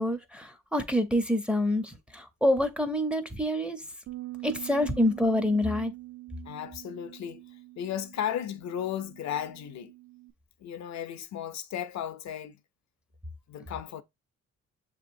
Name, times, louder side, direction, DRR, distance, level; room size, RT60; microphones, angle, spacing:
voice 1, 0.0-3.8 4.4-5.9, left 1 dB, 5° right, 0.6 m, -27 dB
Bass guitar, 4.1-10.3, right 19 dB, 45° right, 0.6 m, -44 dB
voice 2, 6.4-9.9 10.6-12.6 13.5-14.0, left 10 dB, 65° left, 0.6 m, -35 dB
6.6 x 2.9 x 2.6 m
cardioid pair, 90°, 30 cm